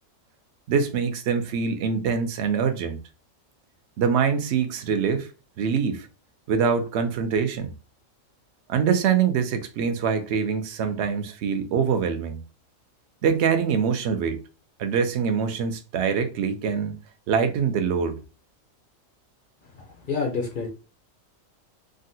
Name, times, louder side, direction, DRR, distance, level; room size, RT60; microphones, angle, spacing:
voice 1, 0.7-3.0 4.0-5.3 5.6-6.1 6.5-7.7 8.7-12.4 13.2-14.4 14.8-17.0 17.3-18.2, right 6 dB, 65° right, 0.8 m, -24 dB
voice 2, 20.1-20.7, left 4 dB, 55° left, 0.6 m, -27 dB
3.7 x 2.1 x 2.6 m
omnidirectional pair, 1.4 m